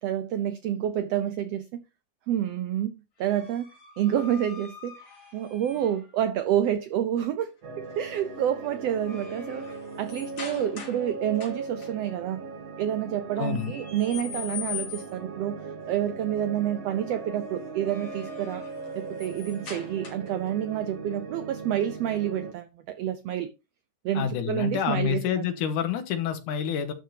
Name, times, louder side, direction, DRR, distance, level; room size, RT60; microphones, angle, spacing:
voice 1, 0.0-1.8 2.3-3.7 4.0-5.0 5.3-7.5 7.8-12.4 12.8-15.6 15.9-18.7 18.9-23.5 24.0-25.5, right 10 dB, 90° right, 1.4 m, -28 dB
sound 1, 3.2-6.1 7.9-8.2 8.6-11.1 11.4-11.9 13.4-15.3 17.6-20.5, left 8 dB, 45° left, 3.9 m, -42 dB
sound 2, 7.6-22.5, right 4 dB, 55° right, 2.6 m, -39 dB
voice 2, 13.4-13.7 24.1-26.9, left 9 dB, 75° left, 2.7 m, -28 dB
12.0 x 6.1 x 2.8 m
omnidirectional pair, 3.7 m